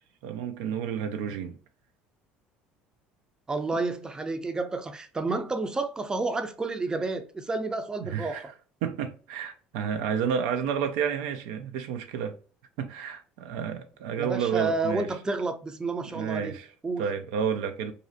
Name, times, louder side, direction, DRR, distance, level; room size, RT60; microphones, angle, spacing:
voice 1, 0.2-1.6 8.0-8.5 8.8-12.3 12.8-15.1 16.1-16.7 17.0-17.9, right 7 dB, 85° right, 0.3 m, -30 dB
voice 2, 3.5-8.5 14.1-16.6 16.8-17.1, right 3 dB, 20° right, 0.4 m, -30 dB
2.5 x 2.0 x 2.6 m
supercardioid pair, 90°, 4 cm